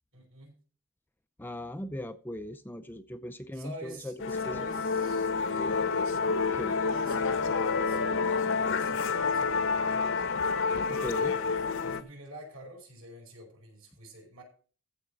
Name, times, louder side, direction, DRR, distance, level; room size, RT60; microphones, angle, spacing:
voice 1, 0.1-0.6 3.5-6.0 6.6-10.2 11.0-11.5 11.8-14.4, right 1 dB, 65° right, 5.2 m, -48 dB
voice 2, 1.4-4.1 4.4-4.6 6.5-6.8 10.9-11.3, equal, 10° left, 0.5 m, -38 dB
Musical instrument, 4.2-12.0, left 4 dB, 60° left, 0.9 m, -28 dB
14.5 x 5.0 x 7.1 m
head